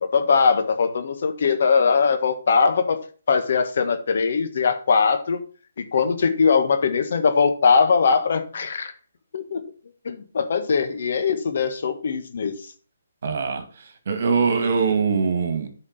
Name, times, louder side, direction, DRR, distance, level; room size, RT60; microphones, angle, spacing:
voice 1, 0.0-5.4 5.8-8.9 9.3-9.6 10.0-12.5, left 5 dB, 60° left, 8 dB, 1.5 m, -21 dB
voice 2, 13.2-13.6 14.1-15.7, right 5 dB, 55° right, 7 dB, 2.2 m, -22 dB
8.8 x 5.0 x 6.7 m, 0.41 s
hypercardioid pair, 150°, 0 cm